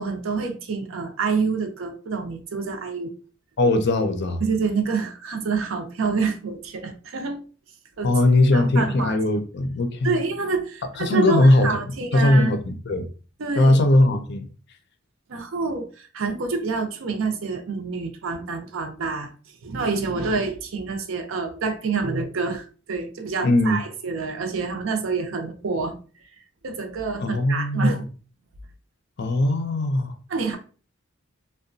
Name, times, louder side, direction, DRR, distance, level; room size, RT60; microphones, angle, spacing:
voice 1, 0.0-3.1 4.4-7.4 8.0-8.1 8.5-9.2 10.0-12.5 13.4-13.7 15.3-19.3 19.6-26.0 26.6-28.0 30.3-30.6, right 4 dB, 65° right, 0.5 m, -27 dB
voice 2, 3.6-4.4 8.0-10.1 11.0-11.7 12.1-12.6 12.9-13.1 13.6-14.5 23.4-23.8 27.2-28.0 29.2-30.1, left 1 dB, 55° left, 0.5 m, -19 dB
2.8 x 2.1 x 2.5 m
head